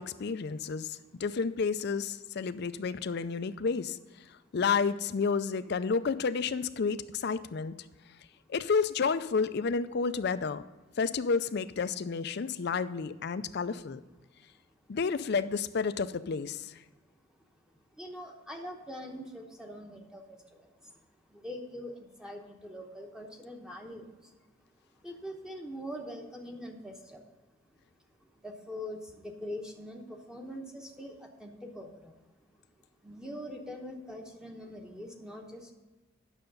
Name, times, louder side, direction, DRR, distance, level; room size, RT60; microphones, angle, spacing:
voice 1, 0.0-4.0 4.5-7.7 8.5-10.6 11.0-14.0 14.9-16.8, left 5 dB, 55° left, 13 dB, 0.4 m, -30 dB
voice 2, 17.7-20.9 21.3-24.3 24.9-27.5 28.2-32.3 32.5-32.6 33.0-35.7, equal, 5° right, 2 dB, 0.9 m, -43 dB
9.2 x 6.6 x 5.3 m, 1.2 s
head